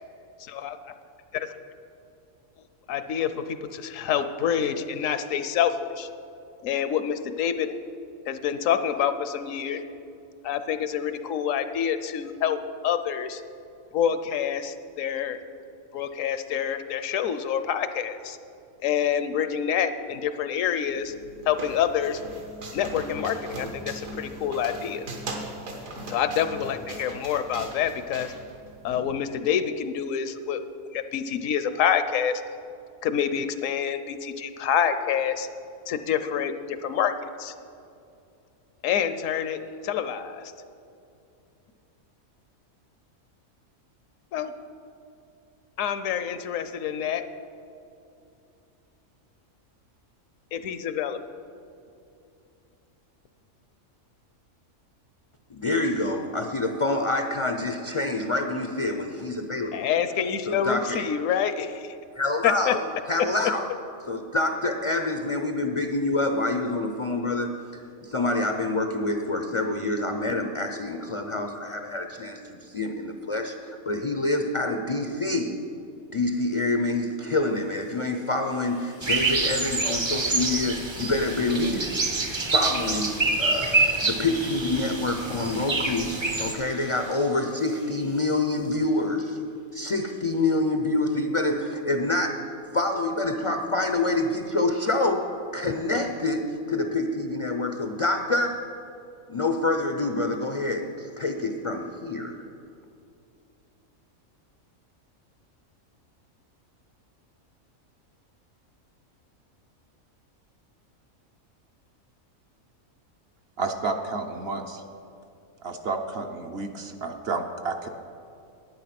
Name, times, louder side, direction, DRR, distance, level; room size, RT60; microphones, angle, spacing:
voice 1, 0.4-0.8 1.3-1.5 2.9-6.1 6.6-7.7 8.3-9.8 10.4-12.6 12.8-13.4 13.9-15.4 15.9-18.4 18.8-21.1 21.5-22.2 22.7-25.1 26.1-28.3 28.8-30.6 30.9-32.4 33.0-35.5 35.9-37.5 38.8-40.4 44.3-44.5 45.8-47.2 50.5-51.2 59.7-61.9 62.4-62.7 63.4-63.5, left 8 dB, 70° left, 10 dB, 1.0 m, -27 dB
sound 1, 20.8-29.0, right 2 dB, 70° right, 1.8 m, -39 dB
voice 2, 55.5-59.9 60.5-61.1 62.2-63.6 64.1-67.5 68.0-75.5 76.1-81.9 82.5-86.1 86.4-89.4 89.7-98.5 99.3-102.4, left 2 dB, 50° left, 5 dB, 0.4 m, -27 dB
sound 2, 77.4-89.1 89.5-90.5, right 1 dB, 90° right, 3.9 m, -49 dB
sound 3, 79.0-86.5, right 3 dB, 30° right, 0.5 m, -26 dB
voice 3, 113.6-114.8 115.6-117.9, right 3 dB, 55° right, 5 dB, 0.9 m, -31 dB
10.5 x 9.2 x 5.9 m, 2.6 s
omnidirectional pair, 1.5 m